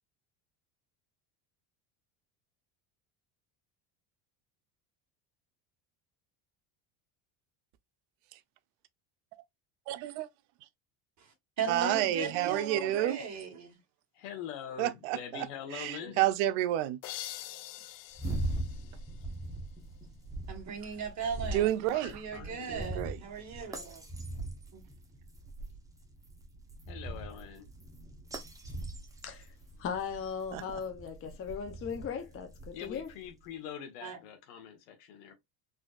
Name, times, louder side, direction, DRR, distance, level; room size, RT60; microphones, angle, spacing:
voice 1, 9.9-10.3 11.7-13.2 14.8-15.5 15.7-17.0 21.5-22.1 22.7-23.2 30.5-30.6, right 13 dB, 75° right, 0.6 m, -30 dB
voice 2, 11.6-13.8 16.0-16.1 20.5-21.8 22.1-24.0 24.7-24.8 34.0-34.2, right 5 dB, 35° right, 1.6 m, -37 dB
voice 3, 14.1-16.3 21.3-21.5 21.9-23.0 26.9-27.7 32.7-35.3, left 8 dB, 90° left, 1.4 m, -44 dB
sound 1, 17.0-19.8, left 14 dB, 70° left, 0.6 m, -45 dB
sound 2, 18.1-33.3, right 1 dB, 5° right, 0.7 m, -41 dB
voice 4, 29.2-29.5 29.8-33.1, left 7 dB, 30° left, 0.6 m, -38 dB
4.1 x 2.6 x 2.4 m
cardioid pair, 130°, 47 cm